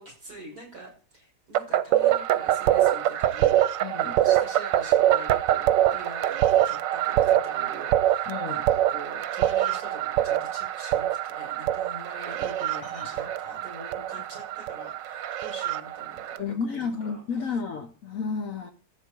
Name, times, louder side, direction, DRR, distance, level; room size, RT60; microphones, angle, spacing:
voice 1, 0.0-3.6 4.0-17.6, right 2 dB, 55° right, -2 dB, 7.0 m, -44 dB
sound 1, 1.5-16.4, right 12 dB, 90° right, 1.4 m, -24 dB
voice 2, 3.8-4.2 8.3-8.6 12.8-13.6 16.4-18.7, left 5 dB, 60° left, 9 dB, 1.1 m, -32 dB
15.0 x 8.1 x 4.5 m, 0.41 s
omnidirectional pair, 1.9 m